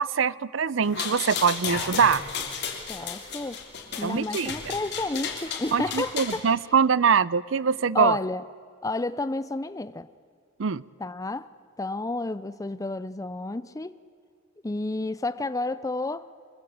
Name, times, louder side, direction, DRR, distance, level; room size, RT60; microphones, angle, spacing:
voice 1, 0.0-2.2 4.0-4.7 5.7-8.2 10.6-10.8, right 6 dB, 70° right, 0.6 m, -23 dB
sound 1, 0.8-6.4, left 6 dB, 55° left, 3.4 m, -33 dB
voice 2, 2.9-3.6 4.0-6.4 7.9-8.4 8.8-10.1 11.0-11.5 11.8-14.0 14.6-16.3, left 2 dB, 15° left, 0.5 m, -31 dB
25.0 x 21.0 x 8.6 m
head